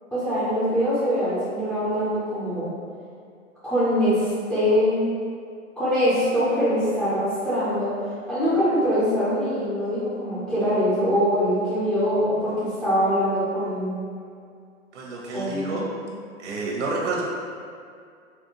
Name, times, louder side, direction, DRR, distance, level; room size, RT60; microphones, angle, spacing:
voice 1, 0.1-2.7 3.6-5.1 5.8-7.9 8.3-14.0 15.3-15.9, equal, 5° left, -14 dB, 0.4 m, -23 dB
voice 2, 14.9-15.8 16.4-17.2, right 3 dB, 60° right, -3 dB, 0.9 m, -29 dB
4.2 x 2.1 x 2.9 m, 2.3 s
figure-of-eight pair, 110°, 40 cm